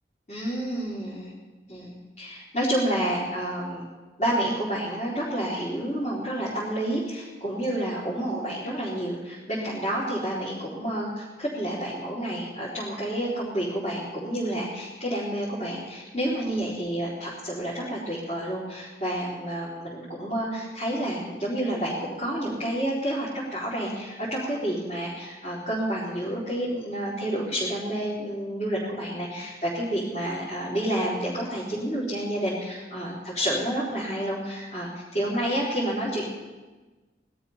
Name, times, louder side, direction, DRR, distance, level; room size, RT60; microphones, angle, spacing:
voice 1, 0.3-1.3 1.7-3.9 4.2-36.3, right 1 dB, 40° left, -10 dB, 4.2 m, -29 dB
19.0 x 12.5 x 5.8 m, 1.2 s
head